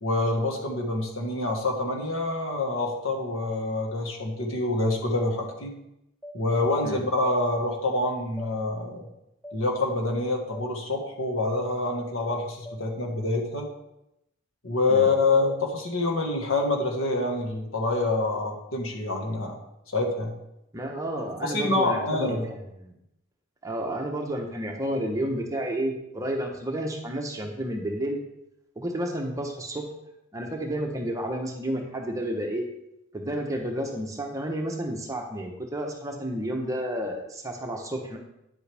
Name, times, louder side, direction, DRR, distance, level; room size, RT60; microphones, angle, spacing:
voice 1, 0.0-5.7 6.3-9.0 9.5-13.7 14.6-19.5 19.9-20.3 21.4-22.5, left 2 dB, 75° left, 2 dB, 1.6 m, -26 dB
sound 1, 5.1-5.3 6.2-6.4 7.3-7.4 8.4-8.5 9.4-9.6 10.5-10.7 11.6-11.7 12.6-12.8, equal, ahead, 0.5 m, -42 dB
voice 2, 20.7-22.4 22.8-22.9 23.6-28.2 28.8-29.9 30.3-32.7 33.1-38.2, right 1 dB, 15° right, 1 dB, 1.0 m, -31 dB
9.9 x 7.7 x 3.5 m, 0.84 s
head